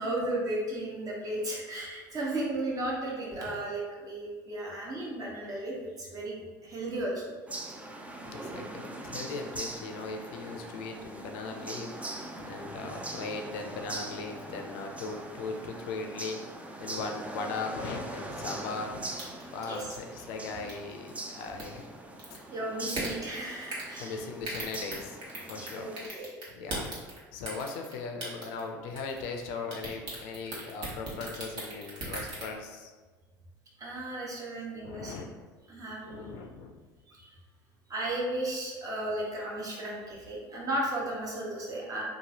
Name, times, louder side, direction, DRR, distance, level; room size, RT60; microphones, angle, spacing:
voice 1, 0.0-7.3 19.7-19.9 22.5-24.2 25.7-26.3 33.8-35.2 35.7-36.4 37.1-37.3 37.9-42.0, right 1 dB, 35° right, -3 dB, 0.9 m, -35 dB
sound 1, 7.5-26.1, right 2 dB, 15° right, 0.3 m, -42 dB
voice 2, 8.2-16.4 16.8-19.0 19.5-21.8 24.0-25.2 25.4-25.9 26.5-27.0 27.3-32.9 34.8-35.3 36.1-36.7, left 4 dB, 70° left, 4 dB, 0.5 m, -38 dB
sound 2, 19.2-19.5 19.9-20.0 20.7-20.9 21.4-21.6 22.2-22.4 22.9-23.1 23.7-23.9 24.4-25.7 26.0-27.2 27.4-27.9 28.2-28.7 28.9-29.4 29.7-32.5, right 2 dB, 65° right, 1.1 m, -37 dB
2.9 x 2.3 x 2.8 m, 1.3 s
hypercardioid pair, 85°, 10 cm